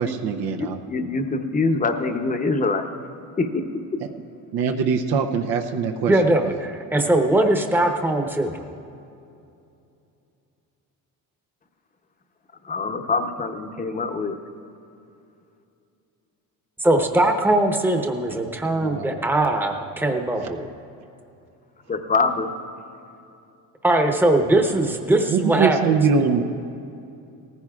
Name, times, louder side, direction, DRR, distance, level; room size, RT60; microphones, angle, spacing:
voice 1, 0.0-0.8 4.5-6.4 18.7-19.2 20.4-20.5 25.3-26.4, right 5 dB, 80° right, 4 dB, 0.8 m, -23 dB
voice 2, 0.6-2.9 3.4-3.7 12.6-14.4 21.9-22.5, left 3 dB, 20° left, 6 dB, 0.8 m, -24 dB
voice 3, 6.1-8.7 16.8-20.7 23.8-26.0, right 1 dB, 5° right, 3 dB, 0.9 m, -21 dB
18.5 x 15.0 x 2.4 m, 2.7 s
cardioid pair, 125°, 36 cm